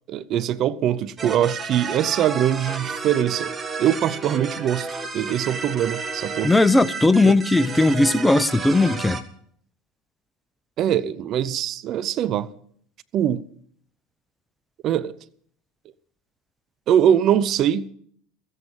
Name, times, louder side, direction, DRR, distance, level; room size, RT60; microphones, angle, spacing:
voice 1, 0.1-3.5 3.8-4.9 5.1-6.5 7.2-7.4 10.8-12.5 13.1-13.4 14.8-15.2 16.9-17.9, right 10 dB, 50° right, 0.6 m, -22 dB
sound 1, 1.2-9.2, right 4 dB, 25° right, 1.6 m, -32 dB
voice 2, 6.4-9.2, left 2 dB, 10° left, 0.7 m, -18 dB
15.0 x 8.1 x 7.5 m
hypercardioid pair, 85°, 0 cm